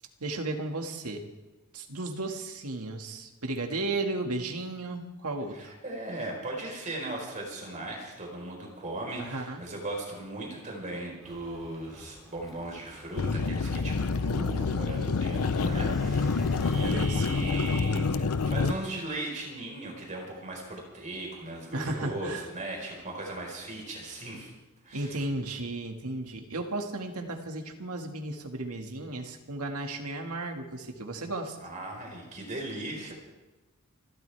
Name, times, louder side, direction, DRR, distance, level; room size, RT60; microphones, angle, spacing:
voice 1, 0.2-1.2 1.7-5.7 9.2-9.6 15.5-16.1 16.8-17.3 21.7-22.5 24.9-31.6, right 2 dB, 80° right, 4 dB, 1.9 m, -34 dB
voice 2, 5.5-24.5 24.8-25.2 31.6-33.1, right 2 dB, 35° right, -1 dB, 4.2 m, -38 dB
sound 1, 11.2-17.8, equal, ahead, 2.8 m, -50 dB
sound 2, 13.2-18.7, left 4 dB, 80° left, 0.6 m, -27 dB
28.5 x 12.5 x 3.4 m, 1.1 s
head